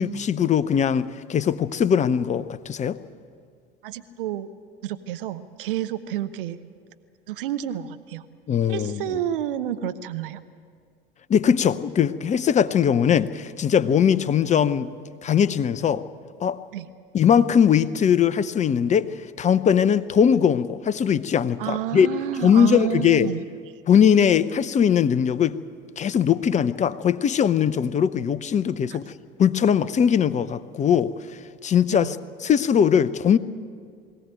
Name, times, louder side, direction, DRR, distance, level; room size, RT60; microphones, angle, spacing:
voice 1, 0.0-3.0 8.5-9.2 11.3-14.9 15.2-16.0 16.4-16.6 17.1-22.1 22.4-23.3 23.9-25.6 26.0-29.1 29.4-31.1 31.6-32.2 32.4-33.4, left 8 dB, 25° left, 15 dB, 0.7 m, -20 dB
voice 2, 3.8-4.5 4.8-6.6 7.3-8.3 8.7-10.4 16.7-16.9 21.6-23.4 31.9-32.1, right 11 dB, 65° right, 11 dB, 0.9 m, -29 dB
22.0 x 16.5 x 9.1 m, 2.1 s
figure-of-eight pair, 65°, 29 cm